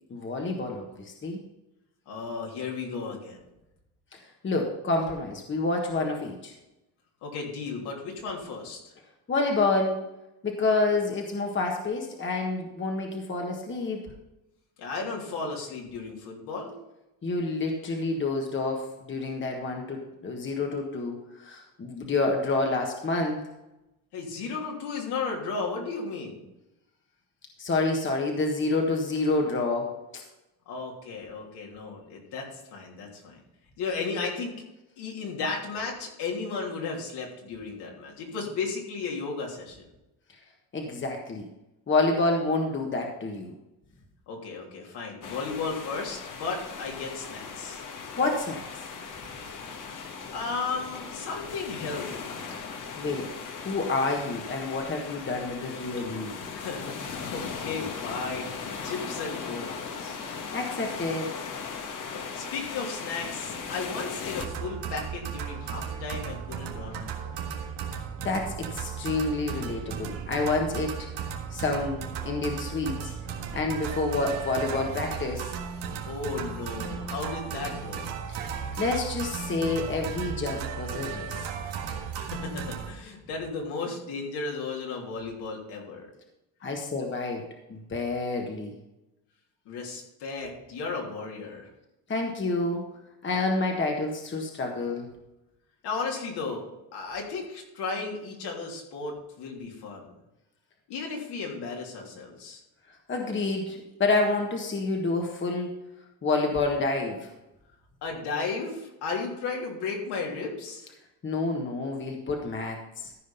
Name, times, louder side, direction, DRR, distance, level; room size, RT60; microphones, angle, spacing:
voice 1, 0.1-1.4 4.4-6.5 9.3-10.0 10.4-14.0 17.2-23.4 27.6-30.2 40.7-41.5 41.9-43.5 48.2-48.8 53.0-53.3 53.6-56.3 60.2-61.3 68.2-71.1 71.5-73.1 73.5-75.5 78.8-81.5 86.6-87.4 87.7-88.7 92.1-95.1 103.1-105.7 106.2-107.3 111.2-113.1, left 3 dB, 25° left, 1 dB, 1.6 m, -28 dB
voice 2, 2.1-3.4 7.2-8.8 14.8-16.7 24.1-26.4 30.7-33.4 33.8-34.6 35.0-39.8 44.3-47.8 50.3-52.3 56.2-60.2 62.1-67.4 76.1-78.1 82.1-86.1 89.6-91.7 95.8-100.1 100.9-102.6 108.0-110.9, left 4 dB, 70° left, -1 dB, 3.2 m, -34 dB
sound 1, 45.2-64.5, left 5 dB, 45° left, 1.5 m, -38 dB
sound 2, 64.3-82.9, right 7 dB, 80° right, 1.8 m, -35 dB
14.0 x 5.1 x 5.7 m, 0.93 s
cardioid pair, 105°, 42 cm